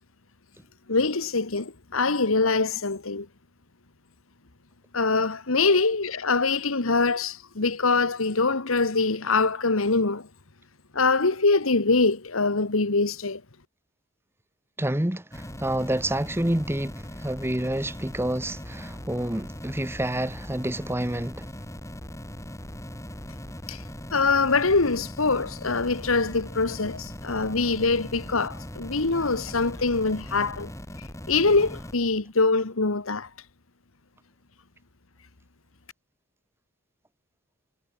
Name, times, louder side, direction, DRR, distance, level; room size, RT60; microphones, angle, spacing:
voice 1, 0.9-3.3 4.9-10.3 10.9-13.4 23.7-23.8 24.1-30.7 31.3-33.3, left 3 dB, 85° left, 1.6 m, -24 dB
voice 2, 14.8-21.5, right 1 dB, 10° right, 1.2 m, -28 dB
sound 1, 15.3-31.9, left 1 dB, 15° left, 1.9 m, -40 dB
head